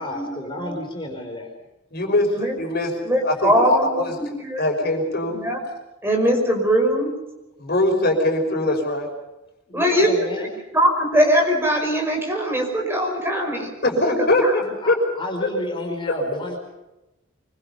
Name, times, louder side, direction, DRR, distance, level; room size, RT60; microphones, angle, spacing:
voice 1, 0.0-1.5 9.7-10.5 14.8-16.6, left 1 dB, 25° left, 2 dB, 4.6 m, -31 dB
voice 2, 1.9-2.3 2.5-2.9 3.2-4.1 4.6-5.4 7.6-9.1 13.8-15.0 15.4-15.5, left 2 dB, 50° left, 3 dB, 5.6 m, -21 dB
voice 3, 3.0-4.7 5.3-5.6 6.0-7.2 9.7-10.1 10.4-10.5 10.7-13.7 14.0-14.1 14.4-14.5, equal, 10° right, 1 dB, 5.4 m, -21 dB
25.5 x 24.0 x 5.5 m, 1.0 s
head